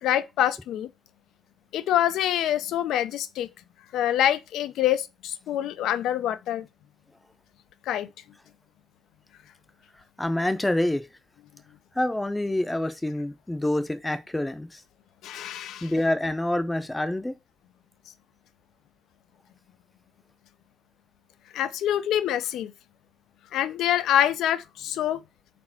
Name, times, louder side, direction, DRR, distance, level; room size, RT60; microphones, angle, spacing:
voice 1, 0.0-0.9 1.7-3.5 3.9-6.7 7.9-8.1 15.2-15.9 21.5-22.7 23.5-25.2, left 11 dB, 90° left, 0.5 m, -25 dB
voice 2, 9.9-11.1 11.9-14.8 15.8-17.3, left 1 dB, 10° left, 0.5 m, -27 dB
4.3 x 4.2 x 5.7 m
cardioid pair, 170°, 0 cm